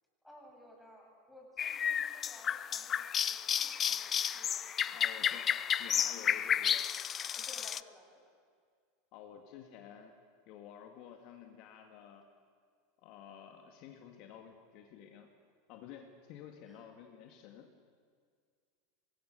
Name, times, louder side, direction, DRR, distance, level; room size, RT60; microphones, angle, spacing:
voice 1, 0.2-5.4 5.7-6.1 7.3-8.2 16.6-16.9 17.2-17.4, left 1 dB, ahead, -1 dB, 7.4 m, -58 dB
sound 1, 1.6-7.8, left 8 dB, 30° left, 0.5 m, -32 dB
voice 2, 4.9-6.9 9.1-10.1 10.5-12.2 13.0-15.3 15.7-17.7, left 8 dB, 55° left, 4 dB, 2.0 m, -52 dB
24.5 x 20.5 x 6.8 m, 2.1 s
hypercardioid pair, 85°, 0 cm